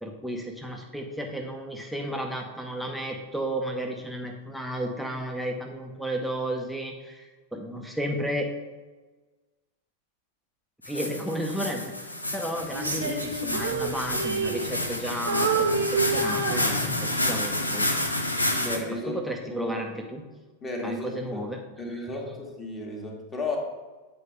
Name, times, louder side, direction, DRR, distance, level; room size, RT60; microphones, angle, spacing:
voice 1, 0.0-8.5 10.8-11.9 12.3-18.1 18.9-20.2 20.8-21.6 22.0-22.1, equal, ahead, 1 dB, 0.8 m, -33 dB
sound 1, 10.8-18.8, left 1 dB, 85° left, 0.8 m, -29 dB
Female singing, 12.7-15.0 15.3-17.3 17.8-18.1, right 4 dB, 70° right, 0.9 m, -28 dB
voice 2, 18.6-19.1 19.5-19.8 20.6-21.4 21.8-23.6, left 2 dB, 20° left, 0 dB, 1.6 m, -33 dB
8.3 x 4.3 x 4.9 m, 1.3 s
figure-of-eight pair, 90°, 0 cm